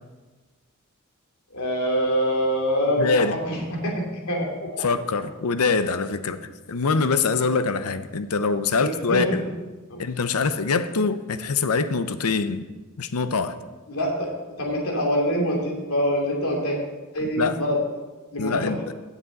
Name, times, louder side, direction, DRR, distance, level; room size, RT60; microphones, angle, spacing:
voice 1, 1.5-3.9 4.3-4.9 8.8-9.2 9.9-10.0 13.9-14.3 14.6-16.8 17.1-17.8 18.3-18.8, equal, 75° left, 0 dB, 2.8 m, -25 dB
voice 2, 3.0-3.4 4.8-6.4 6.7-9.4 10.0-12.6 13.0-13.6 17.4-17.6 18.4-18.9, left 4 dB, 90° left, 12 dB, 0.7 m, -24 dB
16.0 x 7.4 x 4.0 m, 1.3 s
head